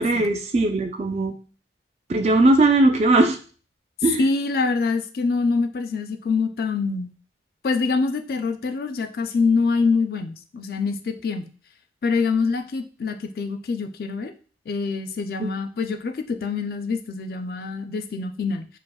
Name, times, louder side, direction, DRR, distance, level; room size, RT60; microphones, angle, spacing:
voice 1, 0.0-1.4 2.1-3.4 4.0-4.2 15.4-15.5, right 2 dB, 35° right, 5 dB, 0.4 m, -19 dB
voice 2, 4.2-7.1 7.6-11.5 12.0-14.3 14.7-18.7, left 4 dB, 55° left, 8 dB, 0.4 m, -25 dB
4.9 x 2.0 x 2.3 m, 0.39 s
head